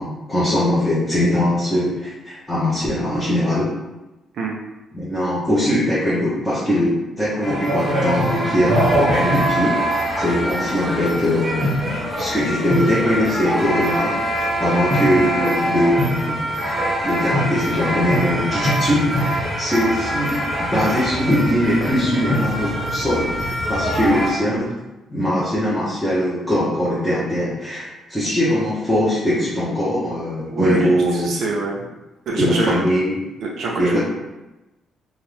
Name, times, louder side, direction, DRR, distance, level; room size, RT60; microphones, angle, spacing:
voice 1, 0.0-3.7 4.9-11.7 12.2-14.1 14.4-16.4 17.0-24.7 25.1-31.3 32.4-33.2 33.7-34.0, left 1 dB, 5° left, -10 dB, 0.9 m, -21 dB
sound 1, 7.4-24.3, equal, 25° right, 1.0 m, -23 dB
voice 2, 30.5-30.9 31.2-31.8 32.3-32.7 33.4-34.0, right 3 dB, 65° right, -2 dB, 0.4 m, -24 dB
2.5 x 2.3 x 3.3 m, 1.0 s
cardioid pair, 90°, 0 cm